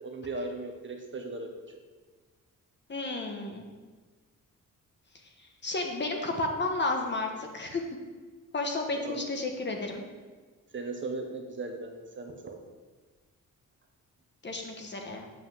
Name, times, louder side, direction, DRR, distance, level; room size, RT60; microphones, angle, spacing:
voice 1, 0.0-1.5 9.0-9.2 10.7-12.6, right 3 dB, 35° right, 4 dB, 1.2 m, -37 dB
voice 2, 2.9-3.6 5.6-7.8 8.5-10.0 14.4-15.2, left 2 dB, 35° left, 2 dB, 1.3 m, -32 dB
8.0 x 5.2 x 7.4 m, 1.4 s
wide cardioid pair, 140°, 33 cm